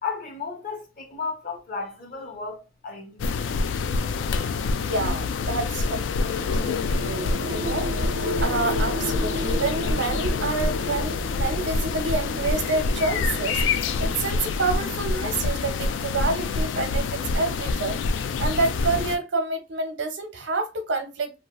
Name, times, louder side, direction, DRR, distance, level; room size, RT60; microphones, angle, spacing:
voice 1, 0.0-3.3, left 4 dB, 50° left, 0.9 m, -34 dB
sound 1, 3.2-19.2, left 4 dB, 85° left, 0.3 m, -26 dB
voice 2, 4.8-13.6 14.0-21.3, right 3 dB, 90° right, 0.8 m, -28 dB
sound 2, 6.4-17.6, right 2 dB, 45° right, 0.4 m, -37 dB
2.7 x 2.2 x 2.9 m
head